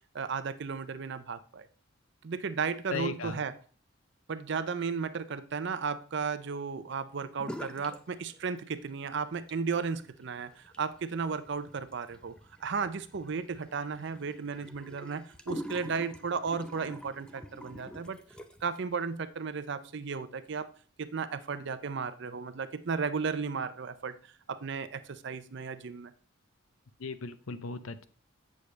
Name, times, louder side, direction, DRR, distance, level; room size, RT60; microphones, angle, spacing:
voice 1, 0.1-1.7 2.2-3.5 4.3-12.3 12.6-18.2 18.6-20.7 21.0-26.1, right 5 dB, 55° right, 12 dB, 0.5 m, -34 dB
voice 2, 2.9-3.4 27.0-28.0, left 5 dB, 80° left, 12 dB, 0.6 m, -37 dB
sound 1, 7.4-8.0 8.3-8.9 9.3-18.8, equal, 5° left, 0.4 m, -46 dB
8.2 x 6.4 x 3.2 m, 0.43 s
head